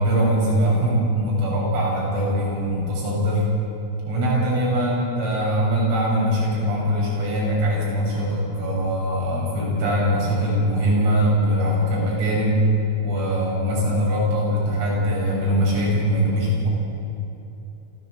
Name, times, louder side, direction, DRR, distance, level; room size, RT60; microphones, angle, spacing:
voice 1, 0.0-3.5 4.1-12.6 13.0-16.7, equal, 90° right, -5 dB, 9.5 m, -22 dB
26.5 x 15.0 x 8.2 m, 2.9 s
omnidirectional pair, 5.4 m